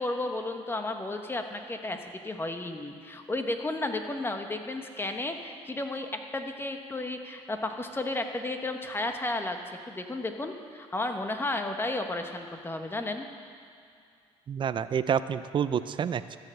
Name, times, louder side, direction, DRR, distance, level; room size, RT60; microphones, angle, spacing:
voice 1, 0.0-13.3, left 2 dB, 20° left, 5 dB, 1.2 m, -33 dB
voice 2, 14.5-16.4, right 8 dB, 40° right, 13 dB, 0.5 m, -28 dB
13.5 x 7.0 x 7.6 m, 2.4 s
supercardioid pair, 85°, 13 cm